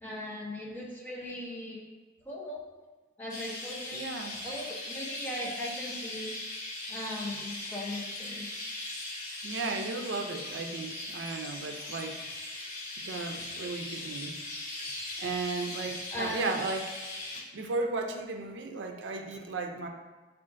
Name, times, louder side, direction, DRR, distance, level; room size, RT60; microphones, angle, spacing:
voice 1, 0.0-1.8 2.2-2.6 3.2-4.1 4.4-6.4 6.9-8.5 16.1-16.5, left 1 dB, 10° left, -4 dB, 0.6 m, -38 dB
Chirp tweet, 3.3-17.4, left 2 dB, 45° left, 0.9 m, -39 dB
voice 2, 3.9-4.4 9.4-12.2 13.0-14.4 14.8-14.9 15.2-17.0 17.3-19.9, right 3 dB, 90° right, 5 dB, 0.4 m, -35 dB
7.2 x 2.4 x 2.5 m, 1.2 s
head